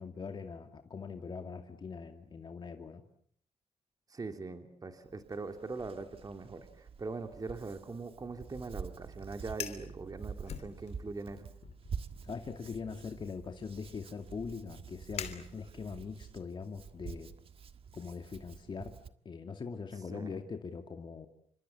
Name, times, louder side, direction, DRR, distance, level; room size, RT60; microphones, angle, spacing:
voice 1, 0.0-3.0 12.2-17.3 17.9-18.9 19.2-21.3, left 5 dB, 45° left, 5 dB, 2.4 m, -42 dB
voice 2, 4.1-11.5 20.1-20.3, right 3 dB, 35° right, 7 dB, 2.8 m, -42 dB
Hands, 5.0-19.1, right 6 dB, 55° right, 1.6 m, -48 dB
Fire, 9.6-9.9 10.5-11.2 11.6-11.9 12.6-16.0, left 9 dB, 75° left, 3.1 m, -45 dB
29.5 x 26.0 x 7.2 m, 0.63 s
cardioid pair, 100°, 11 cm